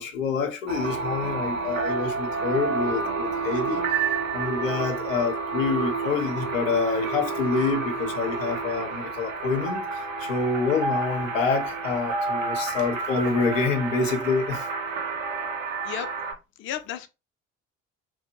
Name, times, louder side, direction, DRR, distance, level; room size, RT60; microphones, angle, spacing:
voice 1, 0.0-3.8 4.3-14.7, left 4 dB, 85° left, 0.5 m, -27 dB
sound 1, 0.7-16.3, right 4 dB, 85° right, 0.6 m, -30 dB
voice 2, 16.6-17.1, left 11 dB, 35° left, 0.4 m, -33 dB
2.7 x 2.0 x 2.6 m
figure-of-eight pair, 50°, 38 cm